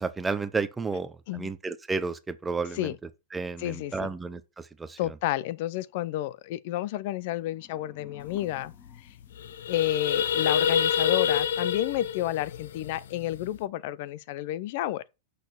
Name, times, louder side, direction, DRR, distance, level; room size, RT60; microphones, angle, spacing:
voice 1, 0.0-2.9 3.3-5.1, right 4 dB, 5° right, 0.6 m, -32 dB
voice 2, 3.6-4.1 5.0-8.7 9.7-15.0, left 14 dB, 45° left, 0.6 m, -31 dB
sound 1, 7.2-10.2, left 5 dB, 20° left, 2.1 m, -54 dB
sound 2, 8.3-8.4 8.7-8.9 9.2-13.6, left 8 dB, 90° left, 0.9 m, -27 dB
6.5 x 6.3 x 6.8 m
supercardioid pair, 175°, 0 cm